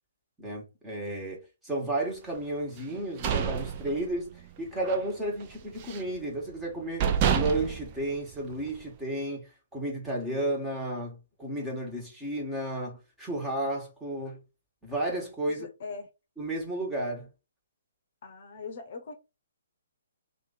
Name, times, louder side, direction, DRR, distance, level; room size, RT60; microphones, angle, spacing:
voice 1, 0.4-14.4 14.8-15.7 16.4-17.3, right 1 dB, 10° right, 1.4 m, -33 dB
sound 1, 2.9-4.5 4.8-5.1 5.4-6.2 6.6-6.7 7.0-8.8, right 8 dB, 35° right, 0.6 m, -29 dB
voice 2, 15.5-16.1 18.2-19.1, left 4 dB, 50° left, 0.8 m, -41 dB
3.0 x 2.6 x 4.0 m
figure-of-eight pair, 135°, 0 cm